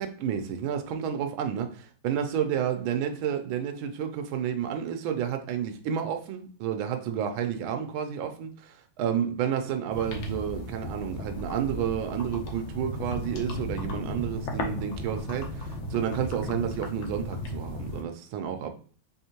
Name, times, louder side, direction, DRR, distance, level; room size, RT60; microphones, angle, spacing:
voice 1, 0.0-18.7, right 8 dB, 80° right, 1.3 m, -30 dB
sound 1, 9.9-18.0, left 1 dB, 75° left, 1.5 m, -35 dB
3.8 x 3.6 x 2.8 m
omnidirectional pair, 2.3 m